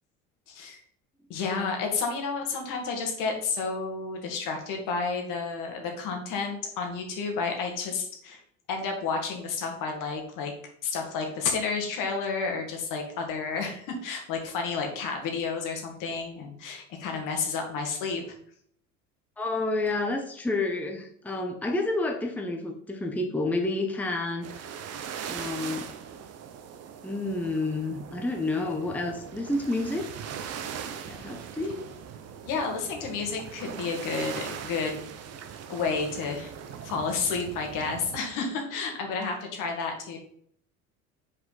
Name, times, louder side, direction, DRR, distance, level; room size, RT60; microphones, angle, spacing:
voice 1, 0.5-0.8 1.3-8.4 8.7-10.5 10.8-18.2 32.4-35.0 35.7-36.5 36.8-40.2, left 4 dB, 60° left, 2 dB, 2.0 m, -31 dB
voice 2, 19.4-24.6 25.3-25.9 27.0-30.1 31.1-31.9, left 2 dB, 5° left, 2 dB, 0.8 m, -29 dB
sound 1, 24.4-38.2, right 8 dB, 45° right, 0.9 m, -40 dB
5.8 x 4.9 x 4.0 m, 0.65 s
hypercardioid pair, 85°, 36 cm